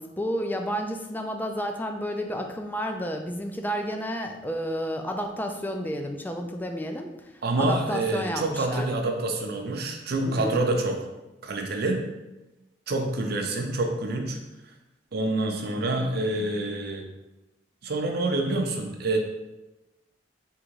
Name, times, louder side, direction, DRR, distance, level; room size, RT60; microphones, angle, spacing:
voice 1, 0.0-7.3 7.6-8.9 10.2-10.6, equal, 10° left, 4 dB, 0.4 m, -31 dB
voice 2, 7.4-11.0 11.4-12.0 12.9-14.4 15.1-17.1 17.8-19.2, right 2 dB, 60° right, 3 dB, 0.6 m, -27 dB
3.7 x 3.0 x 4.6 m, 1.0 s
head